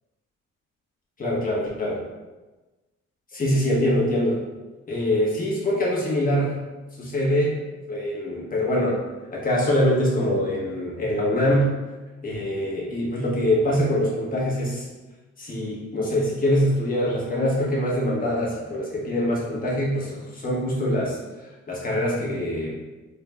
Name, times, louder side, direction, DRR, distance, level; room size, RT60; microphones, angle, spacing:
voice 1, 1.2-2.0 3.3-4.4 4.9-6.6 7.0-7.6 7.9-9.0 9.3-11.7 12.2-14.8 15.4-22.8, left 1 dB, 30° left, -5 dB, 1.3 m, -24 dB
3.9 x 2.4 x 3.4 m, 1.2 s
cardioid pair, 90°, 30 cm